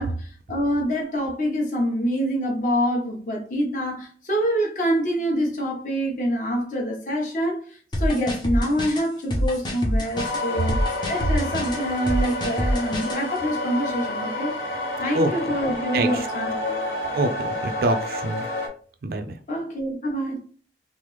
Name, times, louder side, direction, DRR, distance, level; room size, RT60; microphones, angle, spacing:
voice 1, 0.0-7.6 8.0-10.8 11.1-14.5 15.0-16.8 19.5-20.4, equal, 45° left, 1.0 m, -26 dB
sound 1, 7.9-13.2, equal, 25° left, 0.6 m, -26 dB
sound 2, 10.1-18.7, left 1 dB, 70° left, 0.8 m, -29 dB
voice 2, 15.9-16.3 17.1-18.5 19.0-19.3, right 2 dB, 55° right, 0.4 m, -25 dB
3.3 x 2.0 x 3.0 m
head